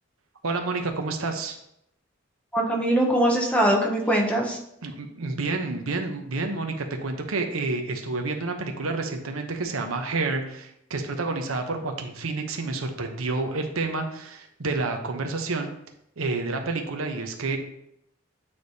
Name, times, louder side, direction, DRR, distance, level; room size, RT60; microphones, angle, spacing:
voice 1, 0.4-1.6 4.1-4.2 4.8-15.7 16.2-17.6, right 3 dB, 90° right, 4 dB, 0.9 m, -29 dB
voice 2, 2.5-4.6, right 1 dB, 5° left, 0 dB, 1.0 m, -22 dB
8.6 x 3.4 x 4.1 m, 0.77 s
head